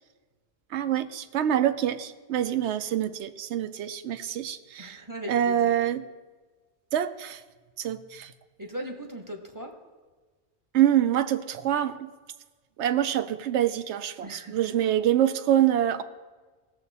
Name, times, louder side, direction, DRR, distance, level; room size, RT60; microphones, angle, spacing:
voice 1, 0.7-5.0 5.3-6.0 6.9-7.4 7.8-8.3 10.7-12.1 12.8-16.0, right 11 dB, 80° right, 12 dB, 0.9 m, -25 dB
voice 2, 4.8-5.7 8.6-9.8 14.2-14.5, equal, 15° right, 2 dB, 1.3 m, -38 dB
17.5 x 7.3 x 4.1 m, 1.4 s
omnidirectional pair, 1.1 m